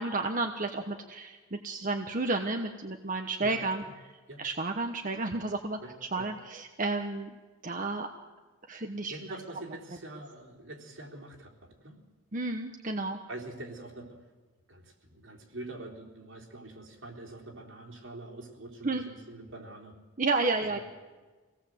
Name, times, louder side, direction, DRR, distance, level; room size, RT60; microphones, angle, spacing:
voice 1, 0.0-3.8 4.4-5.8 6.1-7.4 7.6-8.1 8.7-9.2 12.3-13.2 18.8-19.0 20.2-20.8, right 3 dB, 40° right, 5 dB, 1.1 m, -31 dB
voice 2, 5.8-6.3 9.1-12.0 13.3-14.2 14.7-20.0 20.6-20.8, right 2 dB, 70° right, 0 dB, 3.8 m, -45 dB
25.5 x 18.0 x 7.9 m, 1.3 s
head